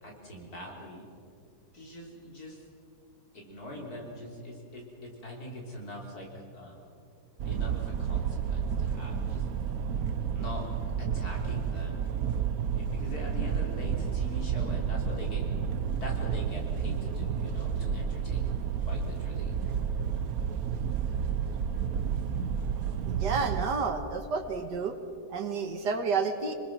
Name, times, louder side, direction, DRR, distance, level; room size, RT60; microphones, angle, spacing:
voice 1, 0.0-1.1 1.7-2.6 3.3-6.3 6.5-6.9 7.4-9.4 10.3-10.7 11.0-12.1 12.7-15.4 15.9-18.4 18.9-19.8, left 1 dB, 65° left, -1 dB, 4.3 m, -43 dB
sound 1, 7.4-23.7, right 7 dB, 65° right, 1.2 m, -31 dB
voice 2, 23.1-25.0 25.3-26.5, right 5 dB, 80° right, 6 dB, 2.1 m, -30 dB
26.0 x 20.5 x 6.1 m, 2.5 s
omnidirectional pair, 1.8 m